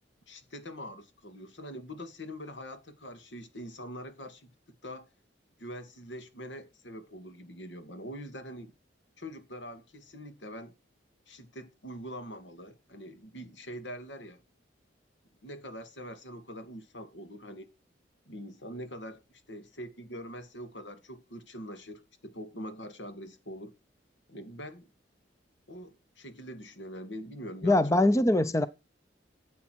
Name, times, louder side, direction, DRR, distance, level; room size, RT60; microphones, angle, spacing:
voice 1, 0.3-4.5 4.8-5.1 5.6-8.7 9.2-10.7 11.3-14.4 15.4-17.7 18.3-23.7 24.3-24.9 25.7-27.9 28.2-28.3, equal, 75° left, 2.2 m, -43 dB
voice 2, 27.6-28.7, left 1 dB, 15° left, 0.6 m, -22 dB
12.5 x 8.5 x 4.6 m
head